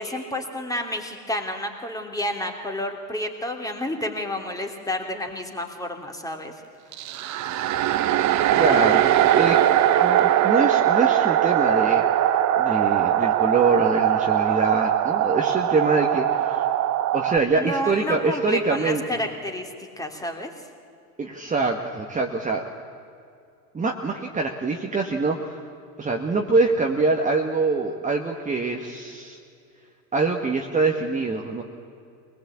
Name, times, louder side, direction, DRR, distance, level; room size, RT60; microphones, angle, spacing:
voice 1, 0.0-6.5 17.5-19.7 20.0-20.5, left 1 dB, 5° left, 3 dB, 2.9 m, -30 dB
sound 1, 6.9-17.4, right 11 dB, 35° right, 1.0 m, -21 dB
voice 2, 8.5-9.6 10.0-12.0 12.6-16.6 17.1-19.2 21.2-22.6 23.7-25.6 26.0-29.4 30.1-31.6, right 3 dB, 15° right, 1 dB, 1.7 m, -24 dB
23.0 x 19.5 x 8.7 m, 2.4 s
hypercardioid pair, 100°, 46 cm